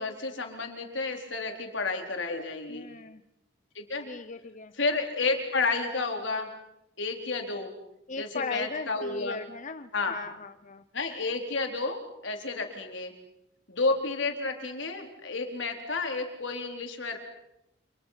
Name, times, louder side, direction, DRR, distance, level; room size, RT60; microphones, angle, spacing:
voice 1, 0.0-2.9 3.7-4.1 4.7-6.5 7.0-7.7 8.2-9.4 9.9-10.2 10.9-13.1 13.7-17.2, left 3 dB, 80° left, 4 dB, 4.1 m, -31 dB
voice 2, 2.7-3.2 4.1-4.7 8.1-10.8, left 4 dB, 45° left, 10 dB, 0.9 m, -38 dB
30.0 x 27.0 x 5.9 m, 0.87 s
head